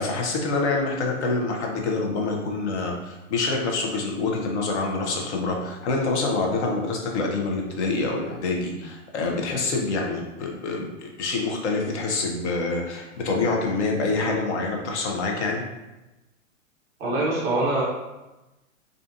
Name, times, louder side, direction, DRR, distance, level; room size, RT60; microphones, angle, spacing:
voice 1, 0.0-15.6, left 3 dB, 60° left, 0 dB, 0.7 m, -26 dB
voice 2, 17.0-17.8, right 2 dB, 15° right, -5 dB, 0.3 m, -23 dB
2.5 x 2.3 x 2.6 m, 1.0 s
hypercardioid pair, 120°, 40 cm